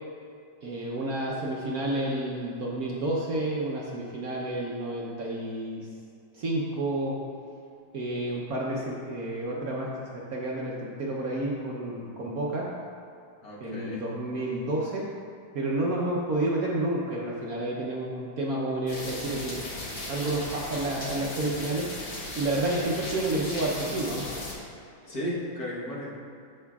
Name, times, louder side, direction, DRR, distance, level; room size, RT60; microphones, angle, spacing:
voice 1, 0.6-5.9 6.3-7.2 7.9-12.7 13.6-15.1 15.5-19.6 20.1-21.9 22.4-24.3 25.0-25.2, right 1 dB, 60° right, -3 dB, 1.1 m, -30 dB
voice 2, 13.4-14.0 25.1-26.2, equal, 55° left, -6 dB, 1.7 m, -35 dB
sound 1, 18.9-24.5, left 1 dB, 70° left, 2.6 m, -37 dB
14.0 x 5.5 x 2.4 m, 2.4 s
omnidirectional pair, 2.1 m